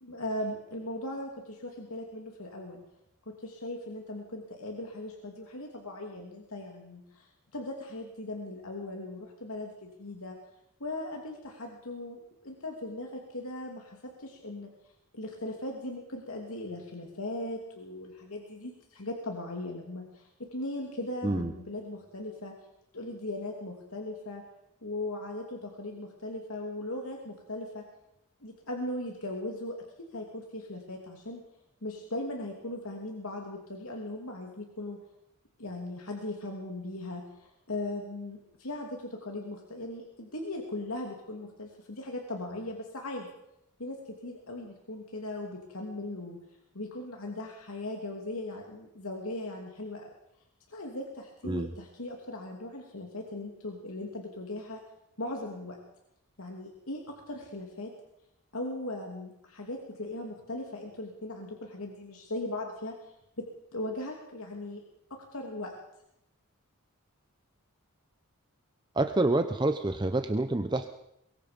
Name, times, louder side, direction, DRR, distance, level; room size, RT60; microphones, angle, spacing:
voice 1, 0.0-2.8 3.2-10.4 10.8-22.5 22.9-24.4 24.8-27.8 28.4-31.4 31.8-35.0 35.6-43.3 43.8-46.4 46.7-50.1 50.7-54.8 55.2-55.8 56.4-57.9 58.5-64.8 65.1-65.7, left 1 dB, 70° left, 1 dB, 2.9 m, -38 dB
voice 2, 68.9-70.9, right 2 dB, 20° right, 8 dB, 0.8 m, -27 dB
23.5 x 22.5 x 5.3 m, 0.81 s
head